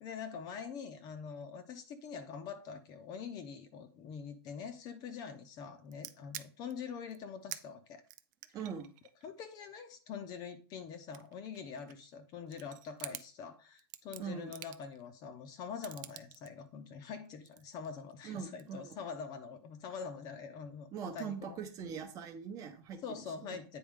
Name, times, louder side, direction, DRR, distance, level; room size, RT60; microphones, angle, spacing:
voice 1, 0.0-8.0 9.2-20.9 21.1-21.6 23.0-23.8, left 6 dB, 30° left, 9 dB, 0.7 m, -44 dB
sound 1, 5.9-6.7 7.1-7.2 7.5-7.7 8.1-10.4 10.9-12.1 12.5-13.3 13.8-15.0 15.8-16.5 17.2-18.2 18.6-18.9, right 14 dB, 45° right, 0.5 m, -48 dB
voice 2, 8.5-8.9 14.2-14.5 18.2-18.9 20.9-23.0 23.5-23.6, right 6 dB, 25° right, 6 dB, 0.9 m, -41 dB
8.7 x 4.3 x 3.6 m, 0.37 s
hypercardioid pair, 150°, 14 cm